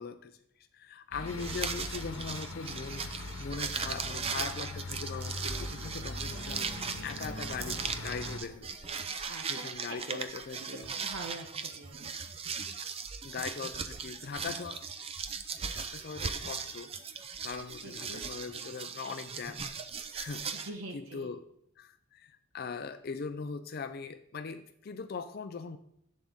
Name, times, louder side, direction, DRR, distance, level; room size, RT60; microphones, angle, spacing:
voice 1, 0.0-10.9 13.2-14.9 15.7-16.9 17.4-19.6 20.1-21.4 21.8-25.8, left 5 dB, 45° left, 10 dB, 0.4 m, -41 dB
sound 1, 1.1-8.4, left 2 dB, 90° left, 1.1 m, -41 dB
sound 2, 1.3-20.7, right 6 dB, 30° right, 0.5 m, -38 dB
voice 2, 9.2-10.0 10.9-12.3 17.8-18.2 20.6-21.3, right 2 dB, 80° right, 2 dB, 1.1 m, -45 dB
11.0 x 7.6 x 3.6 m, 0.73 s
head